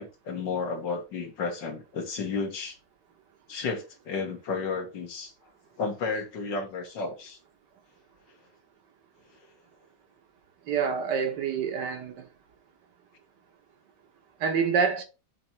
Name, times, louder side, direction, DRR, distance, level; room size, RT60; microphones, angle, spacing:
voice 1, 0.0-2.8 3.5-5.3 5.8-7.4, left 4 dB, 80° left, 2.0 m, -32 dB
voice 2, 10.7-12.3 14.4-15.0, right 6 dB, 70° right, 1.7 m, -27 dB
7.4 x 2.9 x 4.3 m
omnidirectional pair, 2.0 m